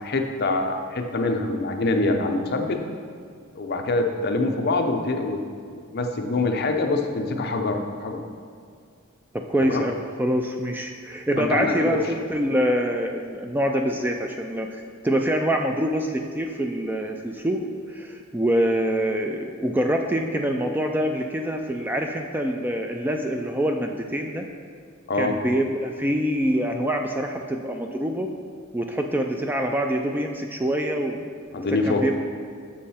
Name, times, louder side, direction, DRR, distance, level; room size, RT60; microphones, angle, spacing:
voice 1, 0.0-2.8 3.6-8.2 9.6-9.8 11.4-12.0 25.1-25.4 31.5-32.1, left 2 dB, 50° left, 4 dB, 0.6 m, -25 dB
voice 2, 9.3-14.7 15.0-24.5 25.1-28.3 28.7-31.2 31.6-32.1, equal, 10° right, 3 dB, 0.3 m, -25 dB
7.3 x 6.3 x 4.3 m, 2.2 s
head